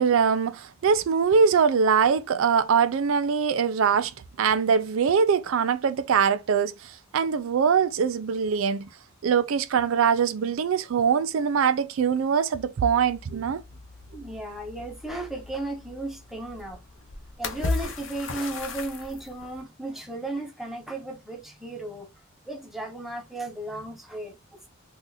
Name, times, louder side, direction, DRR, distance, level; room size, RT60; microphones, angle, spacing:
voice 1, 0.0-4.1 4.4-8.9 9.2-13.6, right 6 dB, 80° right, 0.4 m, -23 dB
sound 1, 12.9-19.6, left 3 dB, 70° left, 0.7 m, -36 dB
voice 2, 14.1-16.8 17.4-22.1 22.4-24.7, right 1 dB, ahead, 0.7 m, -35 dB
2.9 x 2.4 x 3.8 m
head